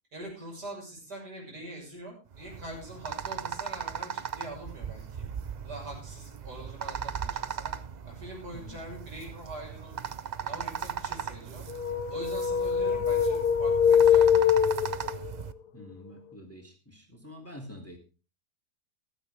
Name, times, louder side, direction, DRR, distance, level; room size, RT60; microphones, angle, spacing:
voice 1, 0.1-5.3 5.6-7.7 8.0-10.0 10.4-11.7 12.1-14.7, right 1 dB, 85° right, -1 dB, 7.2 m, -43 dB
sound 1, 2.3-15.5, right 7 dB, 60° right, 0.4 m, -38 dB
sound 2, 11.7-15.3, left 8 dB, 80° left, 1.7 m, -23 dB
voice 2, 15.7-18.0, left 1 dB, 10° left, 2 dB, 2.8 m, -47 dB
15.0 x 13.0 x 3.5 m, 0.32 s
omnidirectional pair, 1.7 m